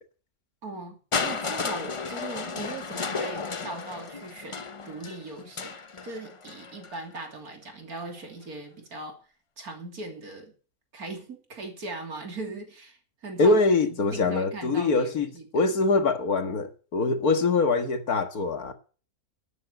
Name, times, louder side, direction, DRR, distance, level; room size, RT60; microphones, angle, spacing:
voice 1, 0.6-5.7 6.0-9.2 9.6-10.5 10.9-13.6 13.9-15.5, right 2 dB, 85° right, 3.5 m, -39 dB
Crushing, 1.1-7.0 8.0-8.1, left 4 dB, 30° left, 0.6 m, -33 dB
voice 2, 13.4-18.7, left 3 dB, 80° left, 2.2 m, -24 dB
11.5 x 9.7 x 7.9 m
omnidirectional pair, 1.5 m